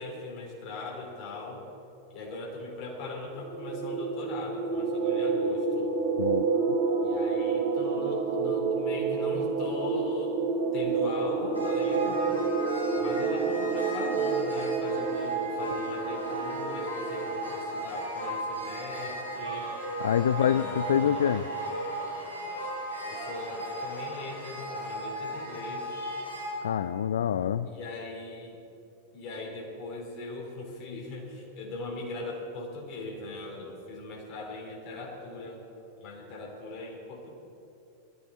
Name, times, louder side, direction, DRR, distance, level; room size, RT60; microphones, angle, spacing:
voice 1, 0.0-1.6 2.1-5.9 7.0-10.4 10.7-12.4 12.9-19.7 20.4-21.5 23.1-26.0 27.6-28.6 29.1-35.6 36.0-37.3, left 2 dB, 40° left, -1 dB, 4.0 m, -40 dB
sound 1, 3.4-17.7, right 4 dB, 30° right, 1.6 m, -29 dB
sound 2, 11.5-26.5, right 2 dB, 85° left, 3.7 m, -36 dB
voice 2, 20.0-21.5 26.6-27.7, left 9 dB, 65° left, 13 dB, 0.4 m, -26 dB
20.5 x 14.0 x 4.3 m, 2.9 s
figure-of-eight pair, 90°, 0 cm